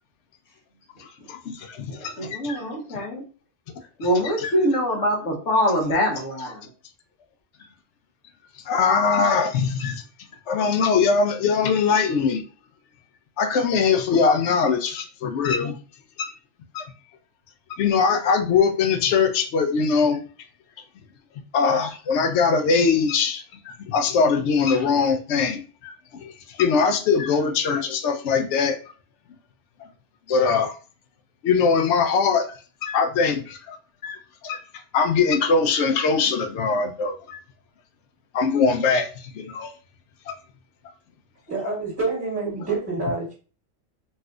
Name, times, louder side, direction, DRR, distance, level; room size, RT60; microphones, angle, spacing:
voice 1, 1.0-2.6 4.4-4.5 8.7-10.0 10.5-12.4 13.4-15.8 16.2-16.3 16.7-16.9 17.8-20.2 21.5-28.8 30.3-30.7 31.4-32.5 32.8-33.8 34.0-34.6 34.9-37.4 38.3-39.7 40.3-40.4, left 5 dB, 70° left, 7 dB, 0.9 m, -22 dB
voice 2, 1.9-3.2 4.0-6.7, equal, 90° left, 0 dB, 1.3 m, -24 dB
voice 3, 41.5-43.3, right 3 dB, 10° right, -5 dB, 1.6 m, -27 dB
4.1 x 2.6 x 2.3 m, 0.37 s
omnidirectional pair, 1.3 m